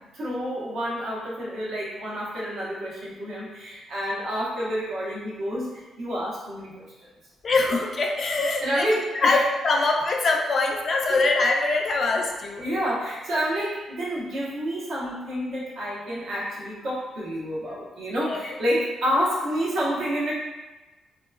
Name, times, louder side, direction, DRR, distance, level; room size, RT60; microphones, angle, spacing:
voice 1, 0.0-6.8 8.6-9.4 12.2-12.3 12.6-20.3, equal, 75° right, -7 dB, 1.0 m, -29 dB
voice 2, 7.4-8.9 9.1-12.7 18.1-18.5, left 3 dB, 45° left, 1 dB, 0.3 m, -23 dB
2.8 x 2.3 x 2.3 m, 1.2 s
cardioid pair, 100°, 0 cm